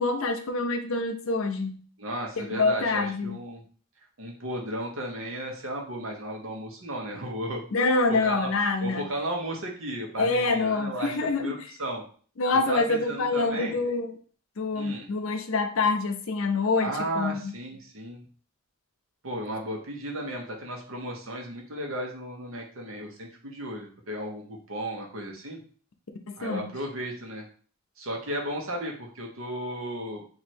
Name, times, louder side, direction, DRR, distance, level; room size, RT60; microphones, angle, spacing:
voice 1, 0.0-1.8 2.4-3.4 7.7-9.1 10.2-11.6 12.4-14.2 14.6-17.5 26.3-26.7, left 3 dB, 65° left, 6 dB, 0.5 m, -26 dB
voice 2, 2.0-3.6 4.2-7.6 8.1-8.5 8.8-12.0 12.5-13.8 14.7-15.1 16.8-18.2 19.2-25.6 26.4-27.5 28.0-30.2, right 1 dB, 65° right, 1 dB, 1.0 m, -34 dB
3.1 x 2.6 x 4.3 m, 0.43 s
head